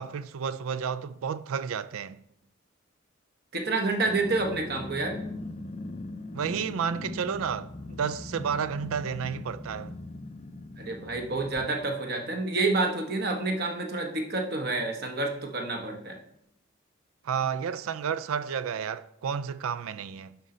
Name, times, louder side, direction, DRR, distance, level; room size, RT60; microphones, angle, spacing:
voice 1, 0.0-2.2 6.3-10.0 17.2-20.4, right 7 dB, 80° right, 0.4 m, -31 dB
voice 2, 3.5-5.2 10.8-16.2, right 3 dB, 50° right, 1.1 m, -29 dB
Growling, 4.0-11.7, left 2 dB, 30° left, 0.4 m, -40 dB
11.5 x 4.3 x 3.9 m
head